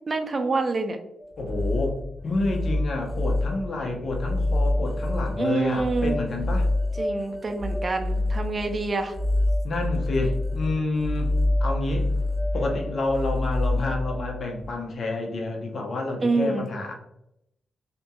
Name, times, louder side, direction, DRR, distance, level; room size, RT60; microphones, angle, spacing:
voice 1, 0.1-1.0 5.4-6.2 7.0-9.2 16.2-16.6, right 3 dB, 40° right, 6 dB, 0.4 m, -26 dB
sound 1, 1.2-14.7, left 1 dB, 30° left, 0.8 m, -27 dB
voice 2, 1.4-2.0 2.2-6.7 9.6-11.3 11.6-12.1 12.5-16.9, left 2 dB, 60° left, 2 dB, 0.7 m, -29 dB
2.7 x 2.6 x 2.2 m, 0.81 s
supercardioid pair, 55°, 0 cm